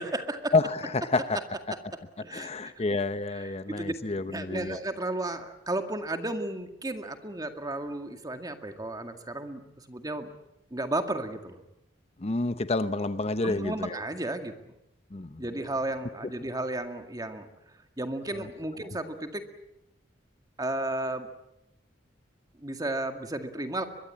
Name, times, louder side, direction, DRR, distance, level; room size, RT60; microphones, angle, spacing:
voice 1, 0.0-0.5 2.2-2.5 3.3-3.9 4.3-9.6 9.9-10.3 10.7-11.6 13.4-14.5 15.4-17.5 18.0-19.4 20.6-21.3 22.6-23.9, right 2 dB, 20° right, 7 dB, 2.1 m, -33 dB
voice 2, 0.5-1.4 2.2-4.8 12.2-14.0 15.1-15.4 18.4-18.5, left 3 dB, 35° left, 12 dB, 0.8 m, -29 dB
23.5 x 22.5 x 8.7 m, 0.87 s
head